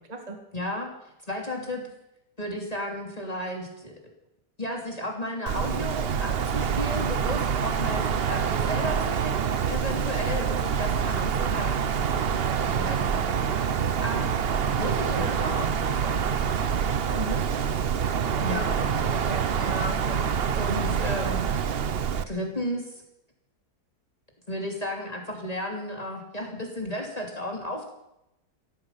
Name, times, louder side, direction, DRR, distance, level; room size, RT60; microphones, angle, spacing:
voice 1, 0.5-0.9 1.3-1.8 2.4-4.0 4.6-14.3 14.8-17.0 18.4-18.7 19.6-20.0 20.5-21.5 22.3-22.9 24.5-27.9, equal, 20° left, 1 dB, 2.9 m, -34 dB
Wind, 5.5-22.2, right 7 dB, 50° right, 0.8 m, -26 dB
voice 2, 17.1-17.5 18.1-19.5 20.1-20.3, right 1 dB, 25° right, 4 dB, 2.0 m, -36 dB
16.0 x 15.0 x 5.7 m, 0.83 s
omnidirectional pair, 1.8 m